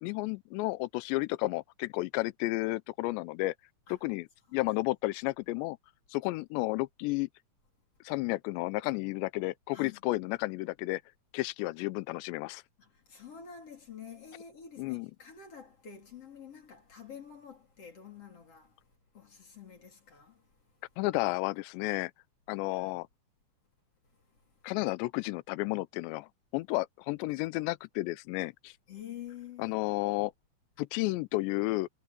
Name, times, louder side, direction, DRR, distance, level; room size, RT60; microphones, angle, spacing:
voice 1, 0.0-3.5 3.9-5.8 6.1-7.3 8.0-11.0 11.3-12.6 14.8-15.1 21.0-22.1 22.5-23.1 24.6-28.7 29.6-30.3 30.8-31.9, left 21 dB, 85° left, 2.6 m, -32 dB
voice 2, 9.7-10.0 12.8-18.8 19.1-20.4 22.7-23.0 28.9-29.8, left 8 dB, 35° left, 3.9 m, -48 dB
omnidirectional pair, 5.7 m